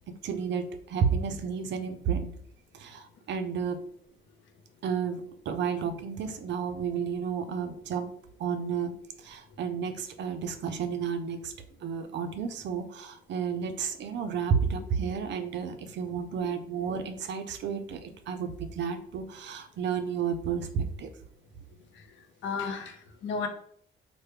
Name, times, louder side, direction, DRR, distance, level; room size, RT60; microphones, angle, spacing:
voice 1, 0.1-2.3 2.7-3.8 4.8-8.1 8.4-8.9 9.2-11.5 11.8-21.1, right 6 dB, 65° right, 7 dB, 0.4 m, -31 dB
voice 2, 21.9-23.5, left 5 dB, 70° left, 6 dB, 0.6 m, -34 dB
3.1 x 2.1 x 3.2 m, 0.64 s
cardioid pair, 90°, 20 cm